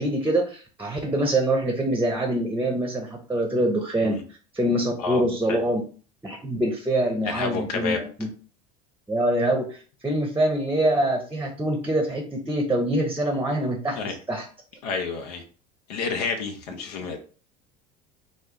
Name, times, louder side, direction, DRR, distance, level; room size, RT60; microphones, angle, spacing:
voice 1, 0.0-4.2 4.5-5.8 6.2-8.3 9.1-14.5, right 1 dB, 10° right, 3 dB, 0.7 m, -25 dB
voice 2, 5.0-5.6 7.2-8.0 14.0-14.1 14.8-15.4 15.9-17.2, left 5 dB, 85° left, 5 dB, 0.7 m, -29 dB
3.0 x 2.1 x 3.6 m, 0.40 s
hypercardioid pair, 90°, 20 cm